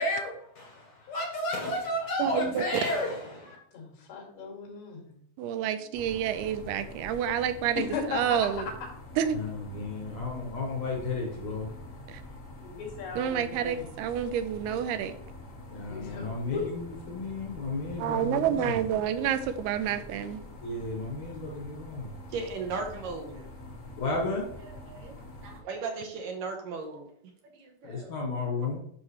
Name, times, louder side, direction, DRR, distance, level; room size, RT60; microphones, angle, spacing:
voice 1, 0.0-3.6 9.3-11.7 15.7-18.8 20.6-22.1 24.0-24.5 27.8-28.8, left 2 dB, 60° left, 0 dB, 2.0 m, -33 dB
voice 2, 2.2-2.6 5.4-7.8 8.1-8.7 9.2-9.4 12.1-12.2 13.2-15.2 18.0-20.5, right 9 dB, 85° right, 11 dB, 2.5 m, -29 dB
voice 3, 3.7-5.1 7.7-8.5 12.6-13.9 15.9-16.7, left 5 dB, 80° left, -1 dB, 4.6 m, -36 dB
sound 1, 5.9-25.6, left 1 dB, 40° left, 1.0 m, -46 dB
voice 4, 22.3-23.5 24.6-25.1 25.4-27.1 27.5-28.1 28.6-28.7, right 4 dB, 70° right, 3 dB, 2.3 m, -37 dB
11.0 x 6.2 x 3.2 m, 0.69 s
omnidirectional pair, 4.6 m